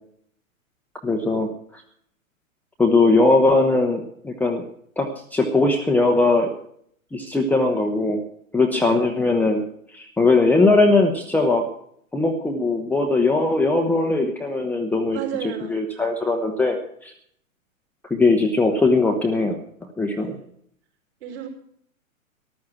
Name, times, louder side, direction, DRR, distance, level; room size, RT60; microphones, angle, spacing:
voice 1, 1.0-1.5 2.8-4.6 5.0-6.5 7.1-8.2 8.5-9.6 9.9-11.6 12.1-15.2 15.7-16.8 17.0-17.1 18.0-19.6 20.0-20.4, left 3 dB, 5° left, 2 dB, 0.9 m, -19 dB
voice 2, 8.7-9.0 15.1-15.8 20.2-20.5 21.2-21.5, right 8 dB, 50° right, 2 dB, 4.8 m, -33 dB
14.5 x 11.5 x 5.9 m, 0.65 s
figure-of-eight pair, 115°, 42 cm